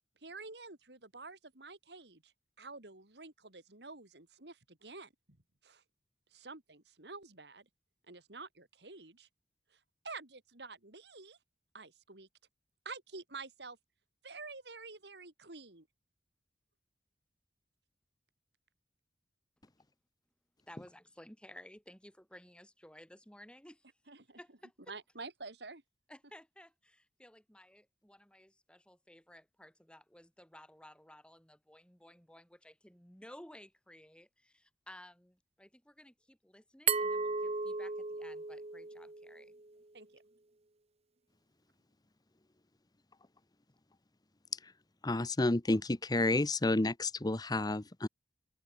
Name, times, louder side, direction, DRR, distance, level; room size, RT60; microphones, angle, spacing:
voice 1, 0.2-2.3 2.6-5.1 5.6-5.8 6.3-7.7 8.1-9.3 9.7-11.4 11.7-12.3 12.8-13.8 14.2-15.9 24.1-24.4 24.9-25.8 39.9-40.2, right 3 dB, 70° right, 3.3 m, -49 dB
voice 2, 20.7-23.9 24.4-24.9 26.1-39.5, left 1 dB, 5° left, 5.4 m, -56 dB
Glass, 36.9-39.7, right 5 dB, 35° right, 1.2 m, -35 dB
voice 3, 45.0-48.1, left 2 dB, 25° left, 0.9 m, -30 dB
open air
head